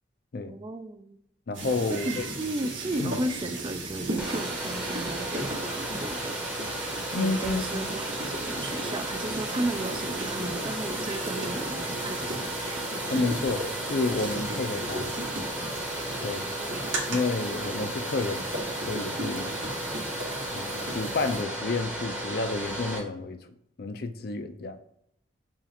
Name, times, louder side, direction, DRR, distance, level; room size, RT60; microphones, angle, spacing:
voice 1, 0.5-1.2 2.1-6.9 7.1-12.8 16.3-16.9, right 2 dB, 25° right, 0.3 m, -35 dB
voice 2, 1.5-2.2 3.0-3.1 7.1-7.8 13.1-15.1 16.2-16.5 17.1-18.5 18.9-19.6 20.5-23.4 23.8-24.8, left 3 dB, 55° left, 0.5 m, -30 dB
sound 1, 1.5-21.4, right 2 dB, 85° right, 1.7 m, -36 dB
Domestic sounds home sounds, 4.2-23.0, right 1 dB, 5° right, 0.8 m, -34 dB
sound 2, 11.1-17.2, right 4 dB, 45° right, 0.8 m, -51 dB
7.1 x 2.4 x 2.8 m
head